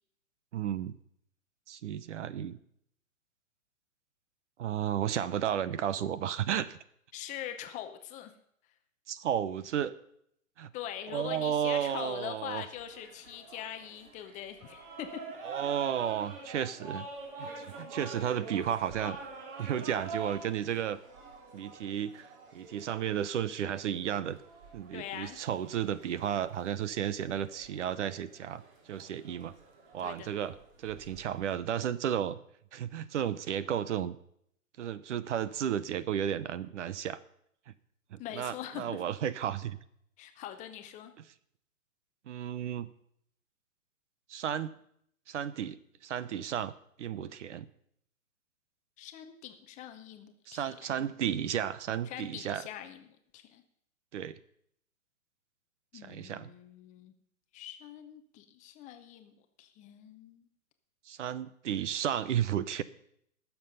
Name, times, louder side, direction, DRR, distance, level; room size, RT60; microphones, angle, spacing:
voice 1, 0.5-0.9 1.7-2.6 4.6-6.8 9.1-9.9 10.6-10.7 11.1-12.6 15.4-17.1 17.4-19.2 19.6-21.0 21.5-22.3 22.5-24.4 24.7-28.6 28.9-29.5 29.9-32.4 32.7-34.2 34.8-37.2 38.1-39.8 42.3-42.9 44.3-44.7 45.3-46.7 47.0-47.7 50.5-52.7 54.1-54.4 55.9-56.5 61.1-62.8, right 9 dB, 55° right, 16 dB, 0.9 m, -33 dB
voice 2, 7.1-8.3 10.7-15.2 24.9-25.4 30.0-30.3 38.2-39.0 40.2-41.1 49.0-51.1 52.1-53.1 53.3-53.6 55.9-57.1 57.5-60.5, left 11 dB, 15° left, 7 dB, 0.7 m, -43 dB
sound 1, 12.7-31.6, right 3 dB, 40° right, 3.0 m, -47 dB
19.0 x 7.1 x 5.5 m, 0.70 s
hypercardioid pair, 130°, 42 cm